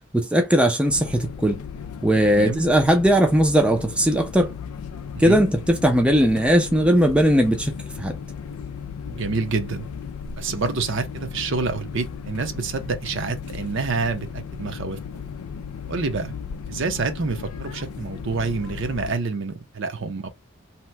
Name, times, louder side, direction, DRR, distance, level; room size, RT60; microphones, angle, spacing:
voice 1, 0.1-1.6 2.0-4.5 5.2-7.7 8.0-8.2, equal, 5° right, 0.4 m, -19 dB
sound 1, 0.9-19.1, left 6 dB, 85° left, 0.4 m, -36 dB
voice 2, 2.3-2.6 5.2-5.4 9.1-9.9 10.4-15.0 15.9-16.3 16.7-20.3, right 4 dB, 55° right, 0.6 m, -27 dB
2.8 x 2.1 x 3.2 m
head